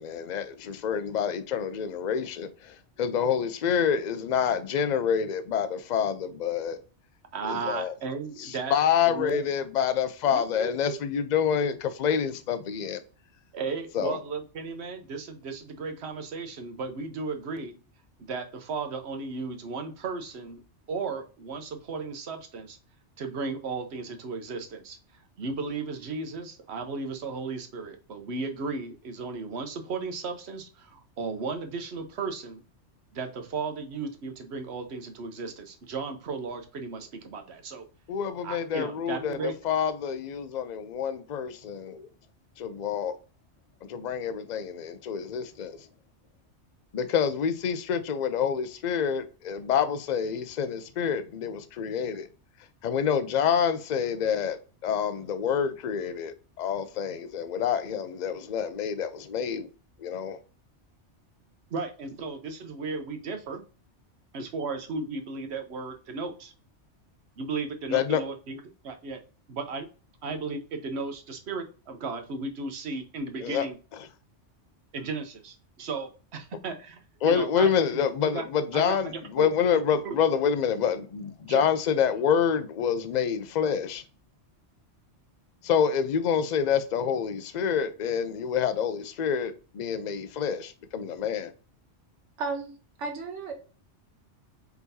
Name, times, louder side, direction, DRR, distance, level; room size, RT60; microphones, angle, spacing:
voice 1, 0.0-6.8 7.4-7.9 8.4-13.0 13.9-14.2 38.1-42.1 42.6-43.1 43.8-45.8 46.9-52.3 52.8-54.6 54.8-59.7 60.0-60.4 67.9-68.2 73.4-73.7 77.2-84.0 85.6-91.5, left 7 dB, 50° left, 0.6 m, -27 dB
voice 2, 7.3-8.8 9.1-9.4 10.3-11.0 13.5-17.7 18.2-20.6 20.9-22.8 23.2-25.0 25.4-32.6 33.1-37.8 38.4-39.6 61.7-63.6 64.3-66.5 67.4-69.2 69.5-69.9 70.2-73.8 74.9-78.4 78.7-79.5 80.0-80.2 81.5-81.6, right 4 dB, 65° right, 1.1 m, -35 dB
voice 3, 92.4-92.7 93.0-93.5, right 4 dB, 85° right, 1.3 m, -33 dB
4.6 x 4.0 x 2.7 m
omnidirectional pair, 1.2 m